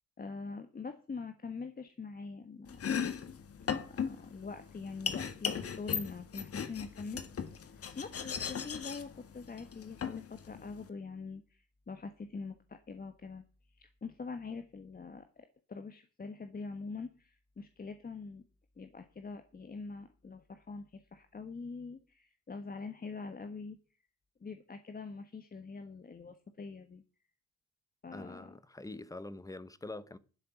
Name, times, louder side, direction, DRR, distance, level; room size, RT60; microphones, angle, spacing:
voice 1, 0.2-2.8 3.6-7.5 7.9-13.4 13.7-18.4 18.8-23.8 24.4-27.0 28.0-28.6, left 4 dB, 30° left, 1.4 m, -44 dB
Domestic sounds home sounds, 2.7-10.9, left 7 dB, 50° left, 1.7 m, -38 dB
voice 2, 28.1-30.2, left 2 dB, 10° left, 1.1 m, -45 dB
12.0 x 6.7 x 9.3 m
cardioid pair, 90°, 30 cm